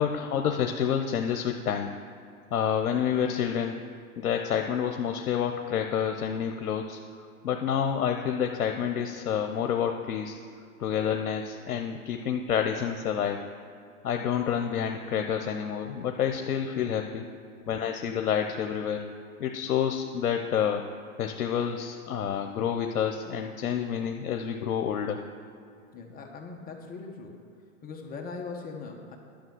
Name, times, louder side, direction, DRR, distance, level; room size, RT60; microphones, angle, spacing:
voice 1, 0.0-2.0 2.5-3.8 4.2-7.0 7.4-10.4 10.8-13.4 14.0-17.2 17.7-19.0 19.4-20.9 21.2-25.2, left 8 dB, 90° left, 4 dB, 0.8 m, -28 dB
voice 2, 25.9-27.5 27.8-29.2, left 4 dB, 20° left, 2 dB, 1.1 m, -41 dB
10.5 x 6.4 x 7.8 m, 2.3 s
hypercardioid pair, 130°, 44 cm